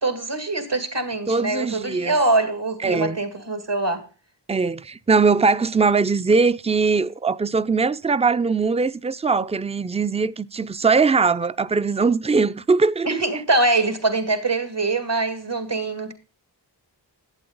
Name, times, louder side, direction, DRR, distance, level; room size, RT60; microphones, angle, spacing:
voice 1, 0.0-4.0 13.1-16.1, right 2 dB, 75° right, 2.2 m, -23 dB
voice 2, 1.3-2.2 2.8-3.2 4.5-13.4, right 4 dB, 15° right, 0.4 m, -21 dB
11.5 x 8.5 x 3.9 m
wide cardioid pair, 40°, 42 cm